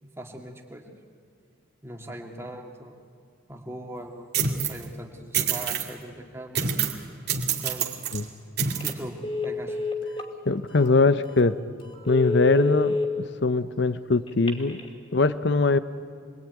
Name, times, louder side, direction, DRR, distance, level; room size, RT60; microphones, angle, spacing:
voice 1, 0.0-0.9 1.8-2.9 3.5-6.7 7.6-8.0 8.8-9.8, right 1 dB, 15° right, 1 dB, 2.3 m, -40 dB
Breaking Ice, 4.3-4.8 5.3-5.9 6.5-7.0 7.3-8.2 8.6-8.9, right 6 dB, 50° right, 2.3 m, -26 dB
Telephone, 8.7-8.9 9.2-10.3 10.8-11.0 11.4-11.5 11.9-13.1 14.3-14.9, left 3 dB, 25° left, 2.7 m, -28 dB
voice 2, 10.5-11.6 12.1-14.8 15.1-15.8, left 3 dB, 55° left, 13 dB, 0.7 m, -22 dB
26.5 x 22.5 x 9.4 m, 2.1 s
head